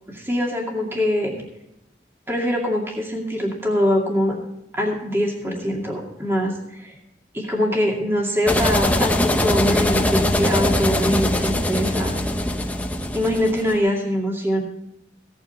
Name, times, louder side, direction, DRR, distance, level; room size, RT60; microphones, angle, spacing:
voice 1, 0.1-1.3 2.3-4.4 4.7-7.0 7.3-12.2 13.1-14.6, equal, 15° right, -1 dB, 2.3 m, -23 dB
sound 1, 8.5-13.8, left 1 dB, 10° left, 0.8 m, -22 dB
16.5 x 9.0 x 4.2 m, 0.85 s
head